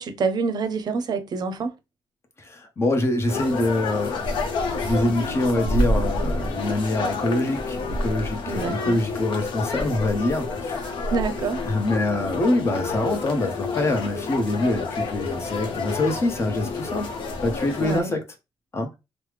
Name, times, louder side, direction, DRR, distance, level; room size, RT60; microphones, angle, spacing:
voice 1, 0.0-1.7 8.5-9.0 10.7-11.6 17.8-18.1, right 4 dB, 55° right, 0.5 m, -27 dB
voice 2, 2.4-4.2 4.8-10.9 11.6-17.2 17.4-18.2 18.7-18.9, left 2 dB, 30° left, 0.8 m, -25 dB
sound 1, 3.3-18.0, left 3 dB, 80° left, 0.7 m, -29 dB
3.2 x 2.0 x 3.2 m
cardioid pair, 100°, 8 cm